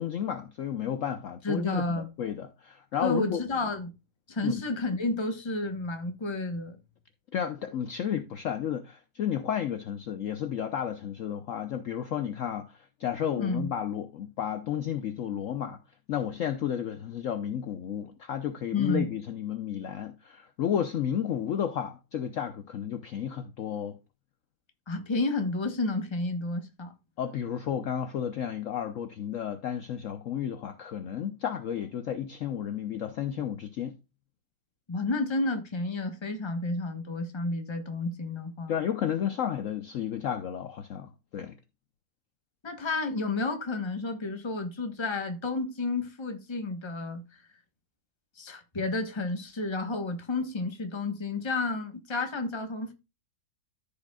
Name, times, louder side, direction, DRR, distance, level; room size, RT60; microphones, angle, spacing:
voice 1, 0.0-3.4 4.4-4.6 7.3-15.8 16.1-24.0 27.2-33.9 38.7-41.5, left 9 dB, 60° left, 0.9 m, -32 dB
voice 2, 1.4-2.1 3.0-3.9 4.3-6.8 13.3-13.7 18.7-19.1 24.9-26.9 34.9-38.8 42.6-47.4 48.4-52.9, left 3 dB, 20° left, 1.0 m, -31 dB
14.0 x 5.4 x 2.3 m
omnidirectional pair, 1.8 m